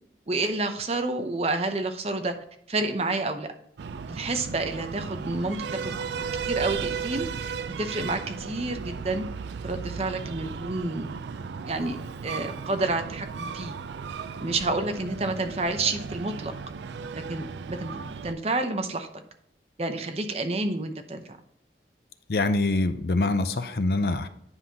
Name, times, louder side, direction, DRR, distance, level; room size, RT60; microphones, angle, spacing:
voice 1, 0.3-2.4 2.7-3.5 4.1-6.0 6.5-9.2 9.6-11.1 11.4-12.0 12.2-13.8 14.4-16.5 17.1-19.1 19.8-21.3, right 2 dB, 35° right, 7 dB, 0.7 m, -29 dB
Breathing, 3.8-18.3, right 5 dB, 80° right, 0.4 m, -35 dB
voice 2, 22.3-24.3, left 2 dB, 60° left, 11 dB, 0.6 m, -24 dB
9.8 x 5.5 x 2.8 m, 0.76 s
head